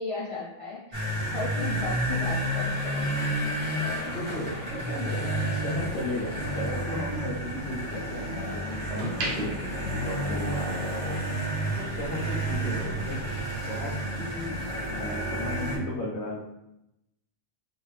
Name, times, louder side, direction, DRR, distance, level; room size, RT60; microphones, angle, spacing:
voice 1, 0.0-3.7, left 3 dB, 50° left, -6 dB, 0.4 m, -36 dB
sound 1, 0.9-15.8, right 1 dB, 25° right, 0.8 m, -31 dB
voice 2, 3.8-11.3 11.7-13.2 13.6-16.4, left 1 dB, 65° left, -5 dB, 0.9 m, -35 dB
sound 2, 4.5-6.5 6.9-8.3 8.7-10.9 11.2-11.4, right 1 dB, 60° right, 0.9 m, -37 dB
2.6 x 2.4 x 3.1 m, 0.86 s
omnidirectional pair, 1.3 m